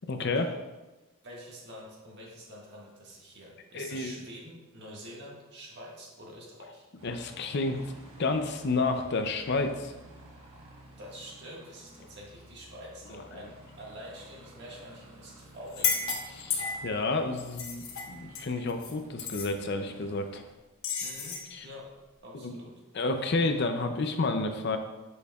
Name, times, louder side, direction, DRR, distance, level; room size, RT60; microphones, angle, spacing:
voice 1, 0.1-0.6 3.7-4.2 7.0-7.9 8.2-9.9 13.3-13.5 16.3-20.4 21.5-21.7 22.4-22.5 22.9-24.8, left 3 dB, 50° left, 6 dB, 0.5 m, -30 dB
voice 2, 1.2-6.9 11.0-16.0 21.0-21.9 22.2-22.8, equal, 50° right, -3 dB, 1.6 m, -46 dB
Aircraft, 7.0-20.5, right 1 dB, 75° right, 1.3 m, -53 dB
sound 1, 15.7-17.0 17.4-18.9 19.2-19.5 20.8-21.5, left 6 dB, 65° left, 1.0 m, -32 dB
8.2 x 6.3 x 2.3 m, 1.1 s
head